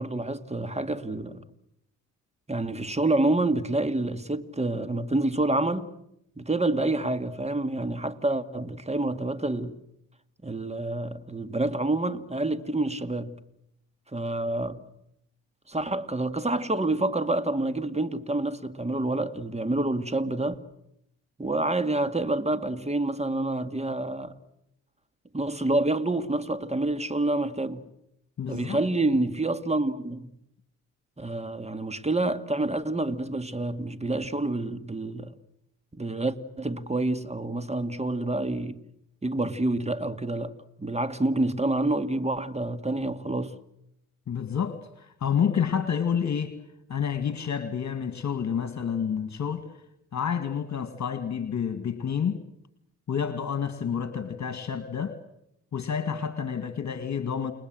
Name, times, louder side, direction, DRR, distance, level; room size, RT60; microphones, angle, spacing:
voice 1, 0.0-1.4 2.5-5.9 6.4-9.8 10.4-13.4 14.1-14.8 15.7-20.6 21.4-24.4 25.3-27.8 28.5-30.3 31.2-35.3 35.9-38.8 39.2-43.6, right 2 dB, 15° right, 2.1 m, -28 dB
voice 2, 28.4-28.8 44.3-46.5 46.9-49.6 50.1-52.4 53.1-55.2 55.7-57.5, left 7 dB, 45° left, 2.1 m, -29 dB
29.5 x 20.0 x 7.9 m
hypercardioid pair, 50°, 39 cm